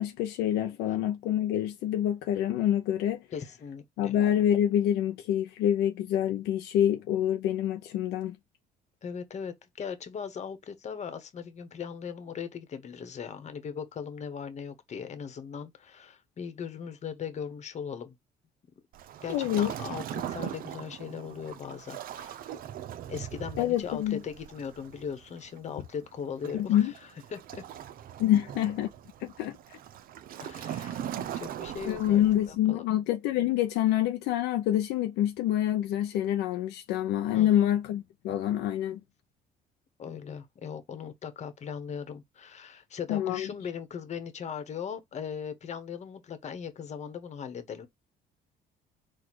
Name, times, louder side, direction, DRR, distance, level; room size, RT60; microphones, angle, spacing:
voice 1, 0.0-3.2 4.0-8.4 19.3-19.7 23.6-24.2 26.5-26.9 28.2-28.9 29.2-29.8 31.8-39.0 43.1-43.5, left 11 dB, 90° left, 0.6 m, -27 dB
voice 2, 3.3-4.2 9.0-18.2 19.2-22.6 23.1-26.9 27.3-27.6 30.4-32.2 32.7-32.8 37.3-37.6 40.0-47.9, left 7 dB, 40° left, 1.1 m, -39 dB
Waves surf, 18.9-32.6, right 10 dB, 60° right, 0.5 m, -41 dB
4.2 x 2.4 x 4.6 m
cardioid pair, 110°, 17 cm